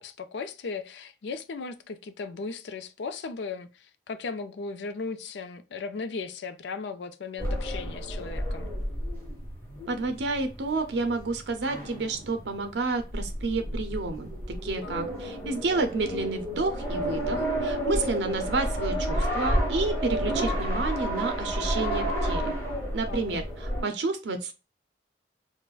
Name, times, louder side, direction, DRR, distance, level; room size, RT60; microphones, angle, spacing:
voice 1, 0.0-8.7 14.8-15.1 23.1-23.4, left 4 dB, 75° left, 0.4 m, -37 dB
sound 1, 7.4-23.8, equal, 15° left, 1.1 m, -31 dB
voice 2, 9.9-22.5 22.9-24.5, right 3 dB, 75° right, 0.5 m, -30 dB
4.6 x 2.1 x 2.3 m
head